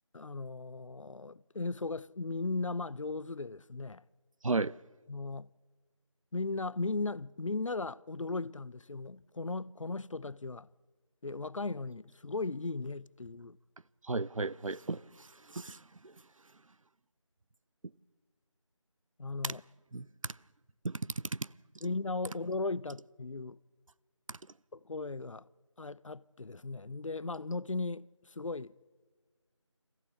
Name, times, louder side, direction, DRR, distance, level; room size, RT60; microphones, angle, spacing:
voice 1, 0.1-4.0 5.1-5.5 6.3-10.7 11.2-13.6 19.2-19.6 21.8-23.6 24.7-25.5 25.8-28.8, left 3 dB, 75° left, 0.6 m, -37 dB
voice 2, 14.1-16.1 19.4-19.5 19.9-20.3 20.8-21.4, right 3 dB, 80° right, 0.6 m, -35 dB
25.0 x 15.0 x 8.3 m
figure-of-eight pair, 170°, 17 cm